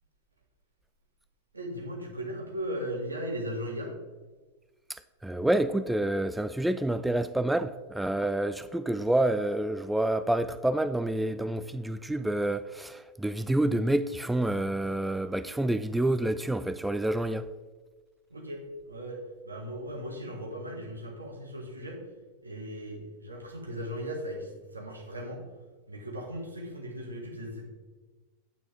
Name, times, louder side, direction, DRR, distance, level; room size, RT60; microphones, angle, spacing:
voice 1, 1.5-3.9 18.3-19.2 19.4-22.0 22.4-25.4 25.9-27.6, equal, 80° right, 1.9 m, -37 dB
voice 2, 4.9-17.5, right 1 dB, 5° right, 0.3 m, -28 dB
9.0 x 8.8 x 3.5 m
figure-of-eight pair, 90°, 0 cm